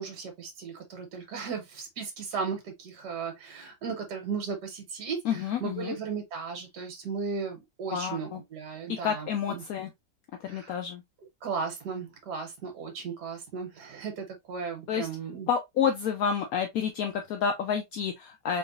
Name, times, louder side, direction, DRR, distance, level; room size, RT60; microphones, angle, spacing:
voice 1, 0.0-9.6 10.5-10.8 11.4-15.5, right 5 dB, 60° right, 1.8 m, -36 dB
voice 2, 5.2-6.0 7.9-8.4 8.9-9.9 10.4-11.0 14.9-15.1 15.5-18.6, left 7 dB, 75° left, 0.8 m, -29 dB
3.8 x 3.4 x 2.5 m
omnidirectional pair, 2.1 m